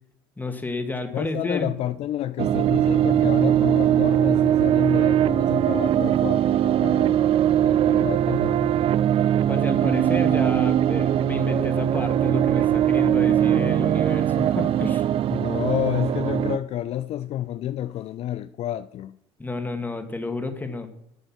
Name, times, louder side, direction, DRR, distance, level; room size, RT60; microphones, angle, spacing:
voice 1, 0.4-1.7 9.5-15.1 19.4-20.9, left 3 dB, 10° left, 2.2 m, -30 dB
voice 2, 1.0-7.2 7.6-8.7 15.3-19.2, left 12 dB, 45° left, 0.5 m, -30 dB
sound 1, 2.4-16.6, right 11 dB, 45° right, 0.5 m, -21 dB
10.5 x 9.2 x 5.8 m
hypercardioid pair, 65°, 14 cm